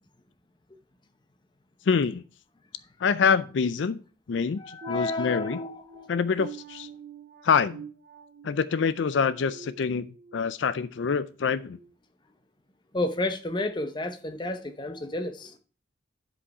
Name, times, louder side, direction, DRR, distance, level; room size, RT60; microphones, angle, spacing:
voice 1, 1.9-2.2 3.0-4.0 4.3-5.6 6.1-6.9 7.4-7.8 8.4-10.1 10.3-11.8, left 6 dB, 70° left, 0.4 m, -25 dB
voice 2, 4.6-6.1 12.9-15.6, left 2 dB, 25° left, 0.8 m, -31 dB
sound 1, 4.8-10.5 10.9-11.2 11.7-11.9, right 6 dB, 45° right, 0.7 m, -46 dB
11.0 x 5.1 x 4.7 m
head